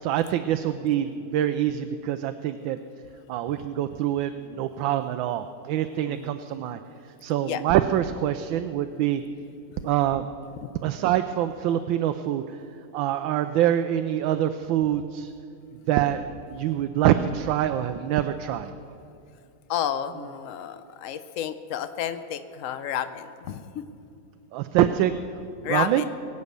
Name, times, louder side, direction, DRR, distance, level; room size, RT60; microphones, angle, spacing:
voice 1, 0.0-2.8 3.3-6.8 7.2-9.2 9.8-10.3 10.8-12.6 12.9-15.3 15.9-16.2 16.5-18.7 24.5-25.1 25.6-26.0, right 11 dB, 80° right, 9 dB, 1.3 m, -25 dB
voice 2, 19.7-23.8 25.6-26.0, left 10 dB, 80° left, 11 dB, 0.7 m, -31 dB
22.0 x 8.2 x 6.7 m, 2.6 s
omnidirectional pair, 2.2 m